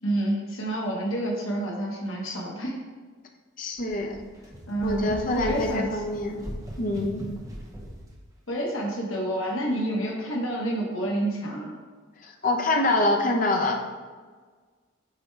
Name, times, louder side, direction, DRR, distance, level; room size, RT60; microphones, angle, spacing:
voice 1, 0.0-2.8 4.7-6.0 8.5-11.8, right 1 dB, 75° left, -2 dB, 1.4 m, -29 dB
voice 2, 3.6-4.2 4.8-6.4 6.8-7.2 12.2-13.8, left 2 dB, 40° left, 3 dB, 0.7 m, -25 dB
sound 1, 3.8-8.1, equal, 15° right, 0.8 m, -39 dB
8.2 x 4.5 x 3.4 m, 1.4 s
head